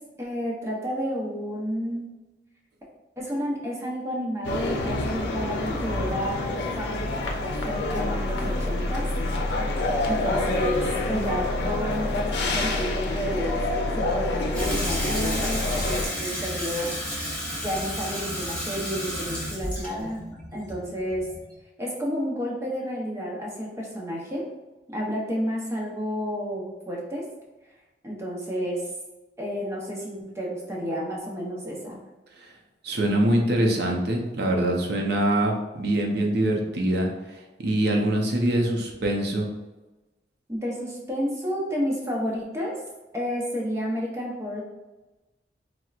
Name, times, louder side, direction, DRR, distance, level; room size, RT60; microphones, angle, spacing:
voice 1, 0.2-2.1 3.2-7.0 7.4-9.1 10.0-13.6 13.9-16.9 17.6-20.2 20.5-21.3 21.8-24.4 24.9-27.2 28.0-28.8 29.4-32.0 40.5-42.8 43.1-44.6, equal, 15° right, -3 dB, 0.7 m, -31 dB
sound 1, 4.4-16.1, left 2 dB, 85° left, 0.5 m, -27 dB
Water tap faucet / Sink (filling or washing), 14.5-21.6, equal, 5° left, 1.0 m, -32 dB
voice 2, 32.8-39.5, right 1 dB, 65° right, 1 dB, 0.6 m, -24 dB
4.3 x 2.1 x 2.4 m, 1.1 s
head